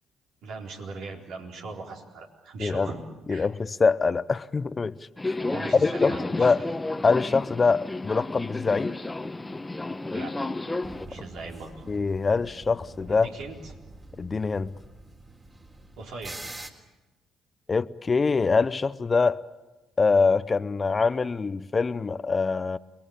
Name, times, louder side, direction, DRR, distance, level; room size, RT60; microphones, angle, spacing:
voice 1, 0.4-3.5 5.5-6.5 10.1-10.4 11.1-11.9 13.2-13.8 16.0-16.4, right 3 dB, 70° right, 4.2 m, -39 dB
voice 2, 3.3-5.0 5.2-5.3 5.7-6.6 7.0-9.0 11.9-13.3 14.2-14.7 17.7-19.4 20.0-22.8, left 4 dB, 35° left, 0.8 m, -24 dB
Subway metro underground, 5.2-11.1, left 2 dB, 20° left, 1.3 m, -31 dB
sound 1, 10.8-16.7, right 2 dB, 25° right, 3.7 m, -45 dB
29.0 x 21.0 x 8.8 m
hypercardioid pair, 50°, 0 cm